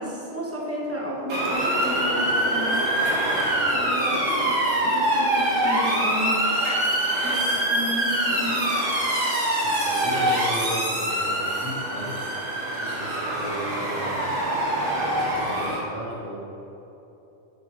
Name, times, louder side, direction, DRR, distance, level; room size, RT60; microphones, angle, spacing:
voice 1, 0.0-3.0 3.7-6.4 7.2-8.8, equal, 10° right, -4 dB, 1.3 m, -32 dB
Motor vehicle (road) / Siren, 1.3-15.8, right 1 dB, 85° right, 1.8 m, -24 dB
voice 2, 9.6-12.4 12.8-14.2 14.6-16.4, right 1 dB, 25° right, -11 dB, 1.9 m, -35 dB
9.7 x 6.5 x 3.3 m, 3.0 s
omnidirectional pair, 1.3 m